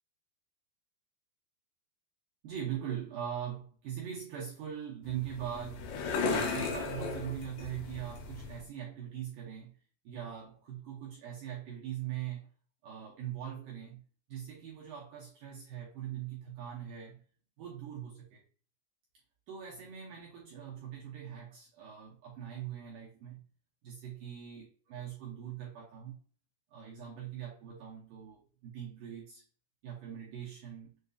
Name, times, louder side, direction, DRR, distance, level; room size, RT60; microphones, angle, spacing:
voice 1, 2.4-5.9 6.2-9.8 10.0-12.5 12.8-14.0 14.3-17.2 17.6-18.4 19.5-23.4 23.8-26.2 26.7-29.4 29.8-31.0, right 10 dB, 80° right, 1.9 m, -41 dB
sound 1, 5.0-8.6, left 4 dB, 75° left, 2.1 m, -36 dB
7.1 x 2.7 x 2.3 m
omnidirectional pair, 4.9 m